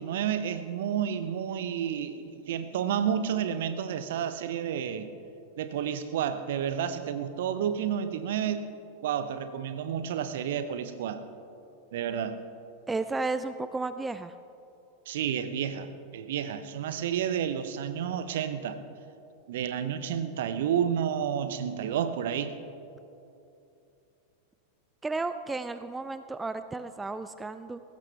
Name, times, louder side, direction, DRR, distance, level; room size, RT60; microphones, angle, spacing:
voice 1, 0.0-5.1 5.6-8.6 9.0-11.2 11.9-12.4 15.1-18.8 19.5-22.6, right 8 dB, 55° right, 11 dB, 0.8 m, -30 dB
voice 2, 12.9-14.3 25.0-27.8, right 3 dB, 10° right, 11 dB, 0.4 m, -33 dB
20.0 x 16.5 x 3.3 m, 2.8 s
figure-of-eight pair, 90°, 0 cm